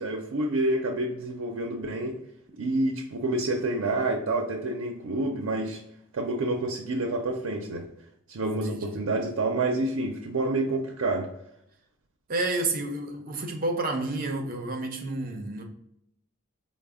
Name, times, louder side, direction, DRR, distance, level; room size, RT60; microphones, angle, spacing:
voice 1, 0.0-2.2 2.6-5.8 6.1-7.9 8.3-11.3, right 2 dB, 85° right, 0.5 m, -28 dB
voice 2, 8.4-8.9 12.3-15.6, right 2 dB, 45° right, 0.6 m, -30 dB
4.0 x 2.0 x 3.5 m
head